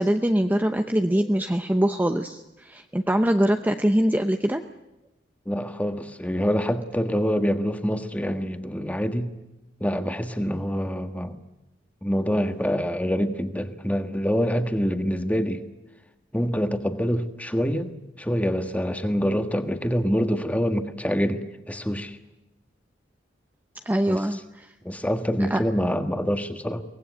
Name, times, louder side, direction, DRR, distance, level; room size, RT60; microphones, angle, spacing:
voice 1, 0.0-4.6 23.9-24.7 25.5-25.6, equal, 10° right, 6 dB, 0.8 m, -23 dB
voice 2, 5.4-9.3 9.8-11.4 12.0-15.6 16.3-22.2 24.1-24.4 24.8-26.8, equal, 10° left, 8 dB, 1.5 m, -26 dB
23.5 x 18.5 x 9.3 m, 0.96 s
head